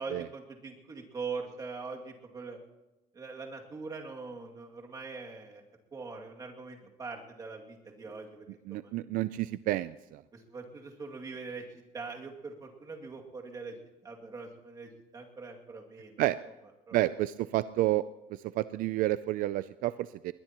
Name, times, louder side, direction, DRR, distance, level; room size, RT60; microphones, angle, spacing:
voice 1, 0.0-2.6 3.1-5.6 5.9-8.9 10.3-13.7 14.0-16.1 16.9-17.0, right 4 dB, 25° right, 0 dB, 2.4 m, -42 dB
voice 2, 8.7-10.2 16.2-16.4 16.9-18.1 18.3-20.3, right 16 dB, 70° right, 14 dB, 0.4 m, -30 dB
20.5 x 20.5 x 3.0 m, 1.0 s
cardioid pair, 160°, 15 cm